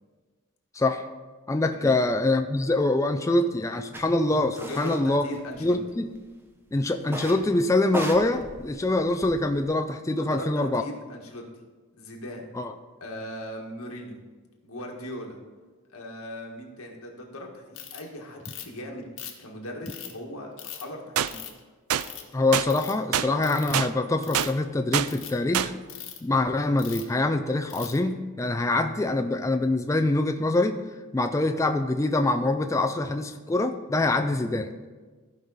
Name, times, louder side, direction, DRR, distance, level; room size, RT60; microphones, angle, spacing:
voice 1, 0.7-1.1 1.5-5.2 5.6-6.1 6.7-10.8 12.6-12.7 22.3-25.7 26.2-30.8 31.1-34.7, left 2 dB, 15° left, 7 dB, 0.3 m, -24 dB
sound 1, 3.9-4.0 4.5-5.0 5.3-6.1 7.0-7.5 7.8-9.6, right 1 dB, 10° right, 0.7 m, -36 dB
voice 2, 4.5-5.8 10.2-11.4 11.9-12.5 13.0-14.2 14.6-15.4 15.9-19.1 19.4-21.4, left 1 dB, 90° left, 0 dB, 1.6 m, -39 dB
Ratchet pawl, 17.7-18.0 18.4-18.8 19.2-20.1 20.6-20.8 21.3-21.6 22.0-22.3 22.6-22.9 23.4-23.8 24.2-24.6 25.0-25.3 25.9-26.2 26.8-27.1 27.7-28.0, left 10 dB, 70° left, 1.3 m, -40 dB
sound 2, 21.2-21.3 21.9-22.1 22.5-22.7 23.1-23.3 23.7-23.9 24.3-24.5 24.9-25.1 25.5-25.7, right 10 dB, 85° right, 0.4 m, -24 dB
14.5 x 5.4 x 4.0 m, 1.3 s
head